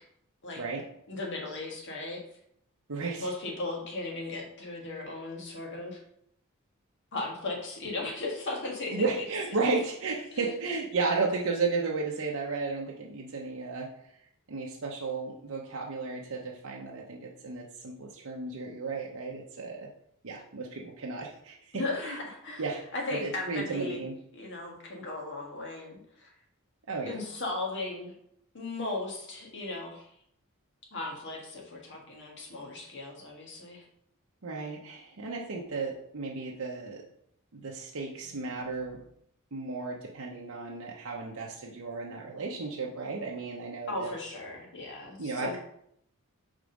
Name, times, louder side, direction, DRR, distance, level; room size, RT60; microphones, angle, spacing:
voice 1, 1.1-2.2 3.2-6.0 7.1-9.2 10.3-10.5 21.7-22.6 22.9-24.0 24.3-26.3 27.0-28.1 28.5-30.1 30.9-33.8 43.9-45.6, left 2 dB, 55° left, -1 dB, 1.6 m, -36 dB
voice 2, 2.9-3.3 8.9-13.9 14.5-19.9 20.2-22.2 22.6-22.8 23.1-24.1 26.9-27.2 34.4-37.0 37.5-39.0 39.5-44.1 45.2-45.6, right 4 dB, 70° right, -2 dB, 0.8 m, -34 dB
5.2 x 3.7 x 5.1 m, 0.71 s
head